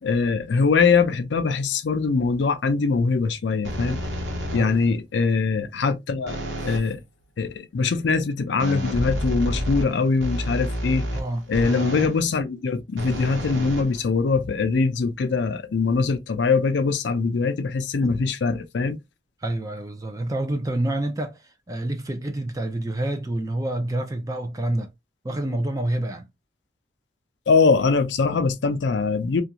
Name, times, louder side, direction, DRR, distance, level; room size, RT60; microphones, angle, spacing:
voice 1, 0.0-4.0 4.5-6.4 6.6-7.0 7.4-11.1 11.5-19.0 27.5-29.4, left 4 dB, 85° left, 0.5 m, -22 dB
sound 1, 3.6-4.9 6.3-6.9 8.6-12.2 13.0-14.4, equal, 85° right, 1.0 m, -29 dB
voice 2, 4.5-5.0 11.1-11.5 18.0-18.1 19.4-24.9 25.2-26.3, right 1 dB, 20° right, 0.4 m, -28 dB
2.5 x 2.2 x 2.8 m
head